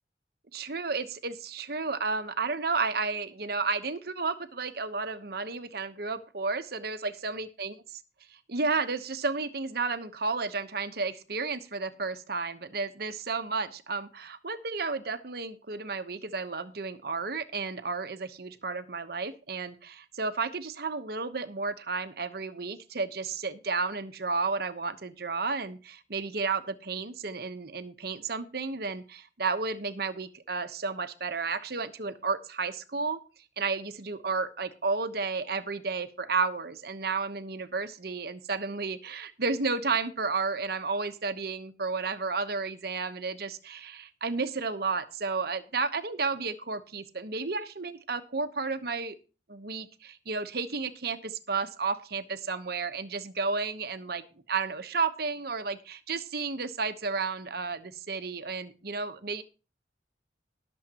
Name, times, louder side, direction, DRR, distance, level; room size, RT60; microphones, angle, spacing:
voice 1, 0.5-7.7 8.5-33.2 33.6-49.1 49.5-54.2 54.5-59.4, right 4 dB, 55° right, 10 dB, 1.0 m, -32 dB
21.5 x 7.2 x 2.9 m, 0.34 s
head